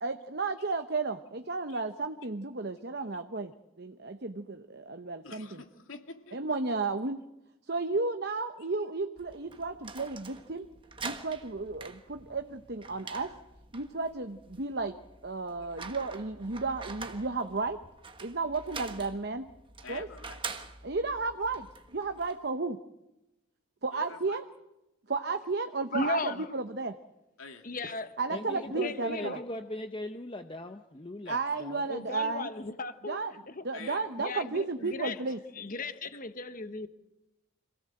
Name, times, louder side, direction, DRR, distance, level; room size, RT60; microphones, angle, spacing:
voice 1, 0.0-3.5 3.8-5.5 6.3-7.3 7.7-10.7 11.0-13.3 13.7-14.9 15.2-17.8 18.2-19.5 19.9-20.1 20.8-21.7 21.9-22.8 23.8-24.4 25.1-27.0 28.2-29.4 31.3-32.5 33.1-33.3 33.6-35.4, right 3 dB, 50° right, 8 dB, 0.9 m, -33 dB
voice 2, 5.2-6.6 8.6-8.7 15.7-15.9 19.8-20.4 23.9-24.4 27.4-28.0 31.2-31.4 33.7-34.0 34.8-34.9, left 4 dB, 70° left, 5 dB, 2.6 m, -48 dB
sound 1, 9.2-22.4, right 4 dB, 25° right, 1.3 m, -45 dB
voice 3, 25.9-26.5 27.6-29.4 31.8-33.2 33.5-33.6 34.2-35.2 35.6-36.9, left 2 dB, 40° left, 11 dB, 1.1 m, -36 dB
voice 4, 28.3-31.8, left 1 dB, 25° left, 7 dB, 0.7 m, -40 dB
26.5 x 17.0 x 7.8 m, 0.97 s
head